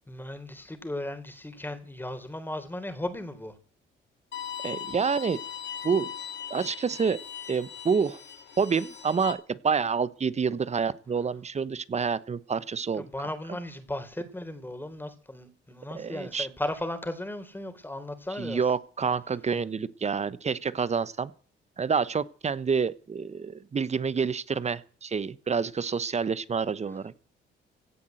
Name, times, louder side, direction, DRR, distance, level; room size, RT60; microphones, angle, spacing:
voice 1, 0.1-3.6 13.0-18.6, left 1 dB, 10° left, 9 dB, 3.7 m, -36 dB
Bowed string instrument, 4.3-9.3, left 9 dB, 60° left, 3.4 m, -39 dB
voice 2, 4.6-5.4 5.8-6.1 6.5-7.2 7.5-8.2 8.6-13.1 15.9-16.5 18.4-21.3 21.8-27.2, right 5 dB, 35° right, 18 dB, 1.0 m, -28 dB
17.0 x 9.4 x 7.9 m, 0.43 s
cardioid pair, 90°, 20 cm